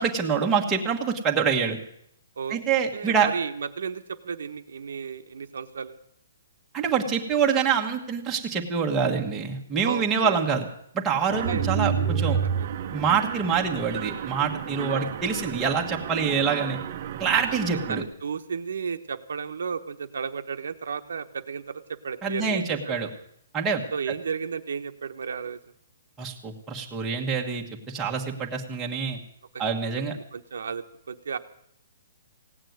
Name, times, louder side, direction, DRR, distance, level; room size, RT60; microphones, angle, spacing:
voice 1, 0.0-1.8 2.5-3.3 6.7-10.6 10.9-12.4 12.9-16.8 17.2-18.0 22.2-23.1 23.5-24.1 26.2-29.2 29.6-30.1, right 6 dB, 10° right, 0 dB, 1.4 m, -26 dB
voice 2, 2.4-6.0 9.8-10.4 11.5-11.7 12.4-12.7 14.9-15.6 17.5-17.6 17.9-22.9 23.9-25.6 29.5-29.6 30.1-31.4, right 6 dB, 75° right, 7 dB, 1.1 m, -34 dB
Mechanisms, 11.3-18.0, right 7 dB, 35° right, 1.0 m, -30 dB
17.0 x 8.9 x 9.4 m, 0.71 s
hypercardioid pair, 170°, 0 cm